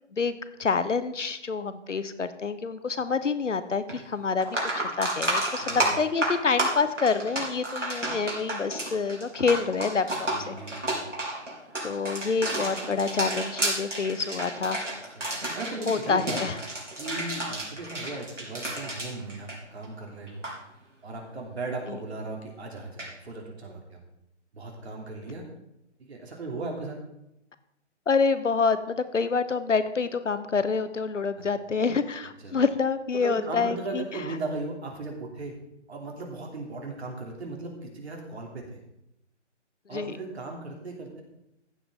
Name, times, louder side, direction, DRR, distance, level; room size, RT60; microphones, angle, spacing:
voice 1, 0.1-4.6 5.0-10.5 11.8-14.8 15.9-16.6 21.9-22.0 28.1-34.0 39.9-40.2, left 5 dB, 85° left, 12 dB, 1.0 m, -27 dB
vaso plastico, 3.9-4.0 4.4-20.0 20.3-20.5 23.0-23.1, right 1 dB, 85° right, 3.6 m, -31 dB
voice 2, 5.6-5.9 10.3-11.0 15.2-15.3 15.5-16.4 16.9-20.5 21.0-24.0 24.5-25.4 26.0-27.0 31.4-31.5 32.4-32.6 33.2-35.5 35.9-38.8 39.9-41.2, right 3 dB, 60° right, 1 dB, 3.1 m, -37 dB
14.5 x 7.7 x 3.7 m, 0.85 s
figure-of-eight pair, 145°, 36 cm